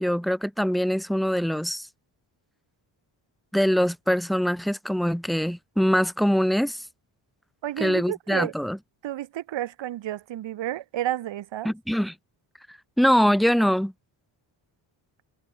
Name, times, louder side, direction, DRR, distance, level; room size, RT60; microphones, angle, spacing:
voice 1, 0.0-1.9 3.5-6.8 7.8-8.8 11.6-12.1 12.7-13.9, equal, ahead, 1.9 m, -23 dB
voice 2, 7.6-8.5 9.0-11.7, right 13 dB, 70° right, 1.2 m, -31 dB
wide cardioid pair, 155°, 46 cm